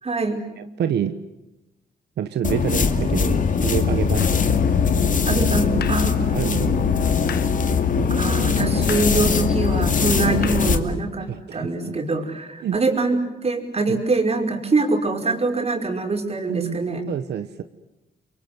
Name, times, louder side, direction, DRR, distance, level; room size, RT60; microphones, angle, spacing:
voice 1, 0.0-0.4 5.3-6.4 8.1-17.0, right 3 dB, 40° right, 3 dB, 5.3 m, -24 dB
voice 2, 0.6-1.2 2.2-4.5 6.3-6.9 8.0-8.2 11.3-12.0 12.6-12.8 13.9-14.0 16.5-16.8 17.1-17.6, right 9 dB, 85° right, 10 dB, 1.2 m, -27 dB
sound 1, 2.4-10.8, left 5 dB, 50° left, 2.5 m, -22 dB
Musical instrument, 4.1-10.9, left 7 dB, 70° left, 1.1 m, -26 dB
30.0 x 23.5 x 8.1 m, 0.95 s
cardioid pair, 85°, 17 cm